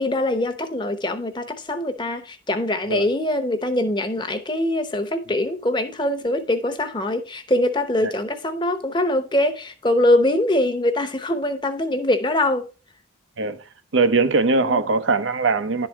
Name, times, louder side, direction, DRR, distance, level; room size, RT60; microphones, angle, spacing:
voice 1, 0.0-12.7 14.6-14.8, left 1 dB, 25° left, 0.8 m, -23 dB
voice 2, 13.9-15.9, right 3 dB, 85° right, 0.8 m, -20 dB
11.0 x 4.1 x 4.4 m
head